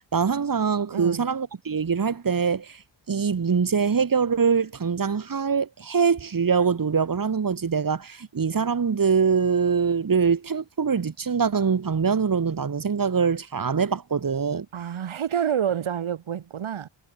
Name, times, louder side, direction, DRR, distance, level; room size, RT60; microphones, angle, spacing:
voice 1, 0.1-2.8 3.1-14.7, right 6 dB, 45° right, 3.3 m, -23 dB
voice 2, 0.9-1.2 14.7-16.9, right 9 dB, 85° right, 2.1 m, -28 dB
wide cardioid pair, 180°, 48 cm